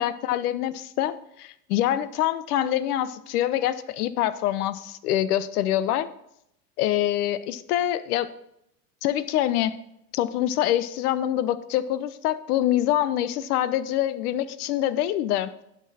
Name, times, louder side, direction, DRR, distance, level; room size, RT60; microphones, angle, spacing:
voice 1, 0.0-6.1 6.8-8.3 9.0-9.8 10.1-15.6, left 12 dB, 65° left, 15 dB, 0.8 m, -25 dB
11.0 x 6.3 x 4.3 m, 0.77 s
hypercardioid pair, 105°, 48 cm